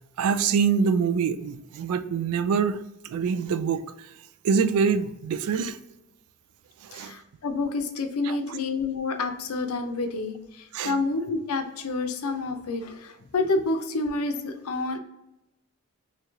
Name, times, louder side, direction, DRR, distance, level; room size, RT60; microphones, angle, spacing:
voice 1, 0.2-2.8 3.0-3.8 4.4-5.8 6.8-7.1 8.2-8.4 10.7-11.0, right 6 dB, 80° right, 12 dB, 0.3 m, -25 dB
voice 2, 6.9-15.0, left 3 dB, 80° left, 6 dB, 0.6 m, -29 dB
3.0 x 2.8 x 3.5 m, 0.92 s
head